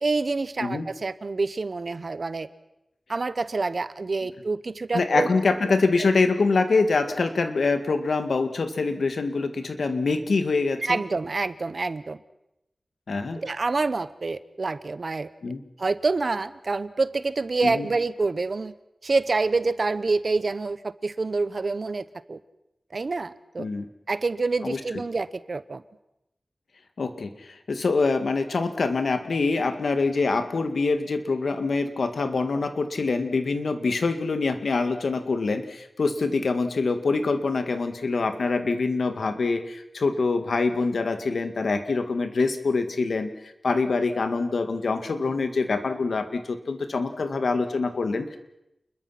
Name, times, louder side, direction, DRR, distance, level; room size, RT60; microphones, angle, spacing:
voice 1, 0.0-2.5 3.1-5.3 6.0-6.1 10.8-12.2 13.4-15.3 15.8-18.7 19.0-22.4 22.9-23.7 24.1-25.8, right 3 dB, 55° right, 14 dB, 1.0 m, -27 dB
voice 2, 4.9-11.0 13.1-13.4 15.4-15.6 17.6-17.9 23.6-23.9 24.6-24.8 27.0-43.3 43.6-48.4, left 3 dB, 85° left, 8 dB, 1.9 m, -25 dB
29.0 x 21.5 x 5.9 m, 0.87 s
wide cardioid pair, 100°, 0 cm